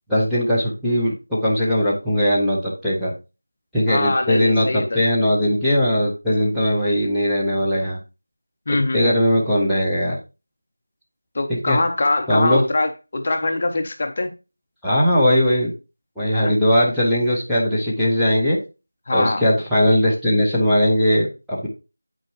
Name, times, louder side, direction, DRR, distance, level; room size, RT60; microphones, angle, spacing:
voice 1, 0.1-3.1 3.7-8.0 8.7-10.2 11.5-11.8 12.3-12.6 14.8-15.7 16.2-18.6 19.1-21.7, equal, ahead, 0.8 m, -19 dB
voice 2, 3.9-5.0 8.7-9.2 11.3-14.3 16.3-16.5 19.1-19.4, left 2 dB, 30° left, 0.7 m, -23 dB
8.9 x 4.4 x 2.9 m
figure-of-eight pair, 175°, 0 cm